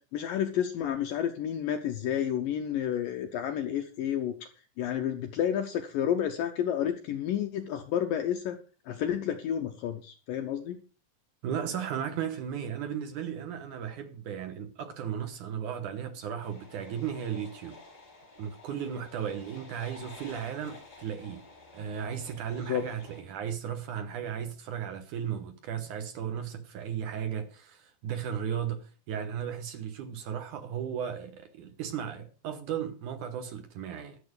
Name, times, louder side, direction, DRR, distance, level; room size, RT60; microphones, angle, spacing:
voice 1, 0.1-4.4 4.8-8.6 8.9-10.8 22.7-22.8, left 9 dB, 75° left, 2.1 m, -30 dB
voice 2, 11.4-17.8 18.4-21.4 21.7-34.2, right 8 dB, 75° right, 1.9 m, -35 dB
sound 1, 16.4-23.2, left 3 dB, 25° left, 5.5 m, -51 dB
13.0 x 7.2 x 6.5 m
omnidirectional pair, 5.0 m